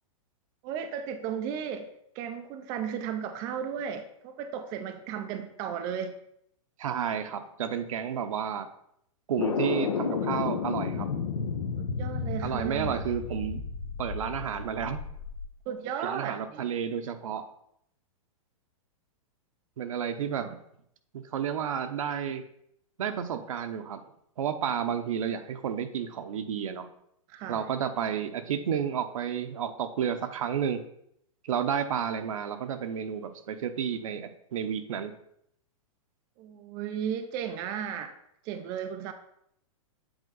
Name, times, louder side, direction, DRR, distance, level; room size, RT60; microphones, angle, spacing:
voice 1, 0.6-1.9 2.2-6.1 11.8-13.0 15.7-16.8 20.4-20.5 27.3-27.6 36.4-38.1 38.4-39.1, right 8 dB, 20° right, 7 dB, 0.3 m, -35 dB
voice 2, 6.8-8.7 9.3-11.1 12.4-13.6 14.0-15.0 16.0-17.4 19.8-20.6 21.1-22.4 23.0-24.0 24.4-26.9 27.5-30.8 31.4-35.1, right 8 dB, 75° right, 8 dB, 0.8 m, -31 dB
sound 1, 9.4-15.4, left 5 dB, 90° left, 1.0 m, -32 dB
8.1 x 4.3 x 3.9 m, 0.73 s
hypercardioid pair, 160°, 17 cm